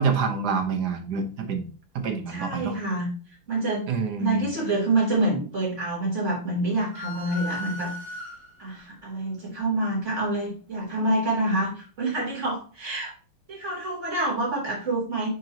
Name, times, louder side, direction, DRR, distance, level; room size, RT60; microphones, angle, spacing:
voice 1, 0.0-1.7 1.9-2.8 3.9-4.5, right 5 dB, 55° right, 5 dB, 1.5 m, -27 dB
voice 2, 2.3-3.1 3.5-3.9 4.2-7.9 8.6-13.1 13.5-15.3, right 2 dB, 30° right, -4 dB, 3.8 m, -27 dB
sound 1, 6.9-8.8, left 1 dB, 45° left, 2.7 m, -37 dB
9.1 x 4.6 x 2.9 m, 0.39 s
omnidirectional pair, 2.4 m